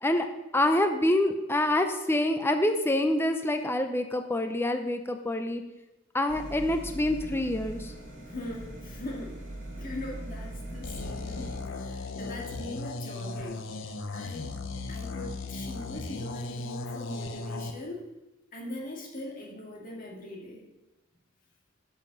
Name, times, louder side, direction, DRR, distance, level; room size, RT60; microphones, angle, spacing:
voice 1, 0.5-5.6 6.1-7.9, left 1 dB, 10° left, 7 dB, 0.5 m, -26 dB
sound 1, 6.3-11.6, right 1 dB, 45° right, 3.5 m, -41 dB
voice 2, 8.2-9.4 9.7-13.6 14.1-14.5 14.9-18.1 18.5-20.6, left 1 dB, 45° left, -2 dB, 2.0 m, -41 dB
sound 2, 10.8-17.7, left 3 dB, 70° left, 0.7 m, -37 dB
8.7 x 5.6 x 6.3 m, 0.98 s
head